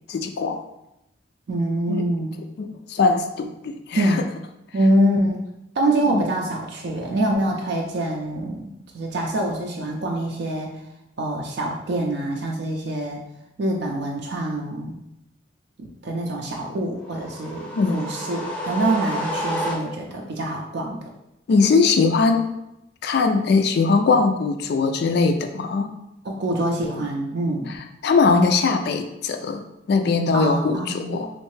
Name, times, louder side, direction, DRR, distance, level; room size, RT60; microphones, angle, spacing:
voice 1, 0.1-0.6 1.9-2.1 2.6-4.2 6.1-6.2 17.7-18.0 21.5-22.5 23.0-25.9 27.7-31.3, left 4 dB, 55° left, 6 dB, 0.3 m, -21 dB
voice 2, 1.5-2.3 4.0-4.3 4.7-5.4 5.8-8.7 8.9-10.7 11.2-13.2 13.6-14.9 15.8-21.0 26.2-27.7 30.3-31.2, right 1 dB, 60° right, 0 dB, 0.4 m, -25 dB
sound 1, 17.0-20.2, equal, 5° left, 0.5 m, -30 dB
3.2 x 2.6 x 3.2 m, 0.85 s
head